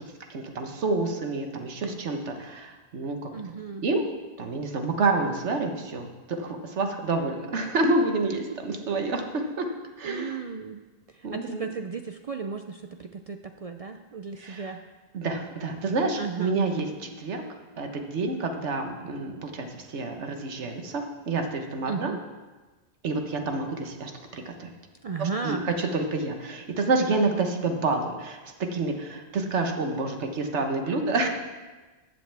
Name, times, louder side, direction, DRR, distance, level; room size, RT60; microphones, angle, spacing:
voice 1, 0.3-3.3 3.8-4.0 4.4-9.7 10.0-10.4 11.2-11.7 14.4-14.7 15.1-17.4 17.8-22.1 23.0-24.7 25.2-31.3, right 3 dB, 80° right, 4 dB, 1.4 m, -28 dB
voice 2, 3.3-3.9 10.0-10.8 11.1-14.8 16.1-16.6 21.8-22.2 25.0-25.7, right 5 dB, 60° right, 6 dB, 0.3 m, -35 dB
14.5 x 8.5 x 3.4 m, 1.2 s
omnidirectional pair, 1.2 m